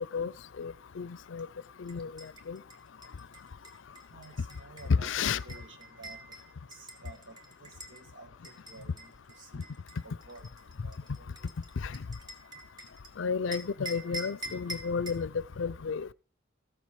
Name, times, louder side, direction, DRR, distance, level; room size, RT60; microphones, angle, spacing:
voice 1, 0.6-1.5 1.8-2.6 4.9-5.4 11.8-12.0 13.2-15.3 15.6-16.1, left 5 dB, 80° left, 0.5 m, -32 dB
sound 1, 1.9-8.0 8.4-13.1 13.5-15.3, right 1 dB, 20° right, 1.7 m, -46 dB
voice 2, 4.1-6.2 6.8-9.1 9.4-9.7 10.0-10.5 10.8-10.9, right 3 dB, 85° right, 1.7 m, -52 dB
14.5 x 7.4 x 4.9 m
head